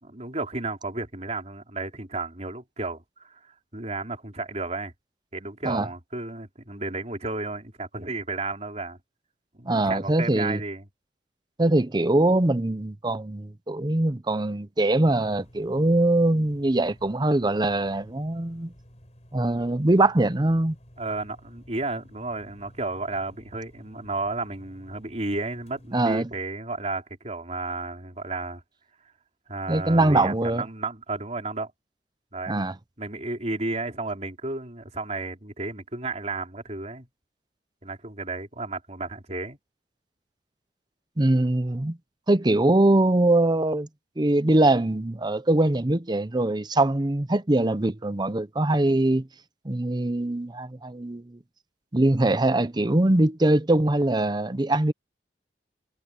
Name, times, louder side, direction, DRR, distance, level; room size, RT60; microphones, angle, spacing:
voice 1, 0.0-4.9 5.3-9.0 9.5-10.9 21.0-28.6 29.5-31.7 32.3-32.6 33.0-37.1 37.8-39.6, right 3 dB, 40° right, 4.1 m, -33 dB
voice 2, 9.7-10.6 11.6-18.7 19.3-20.8 25.9-26.3 29.7-30.6 32.5-32.7 41.2-42.0 42.3-43.9 44.2-49.3 49.6-51.4 51.9-54.9, right 2 dB, 25° right, 0.8 m, -22 dB
sound 1, 15.0-26.1, equal, 40° left, 5.4 m, -52 dB
head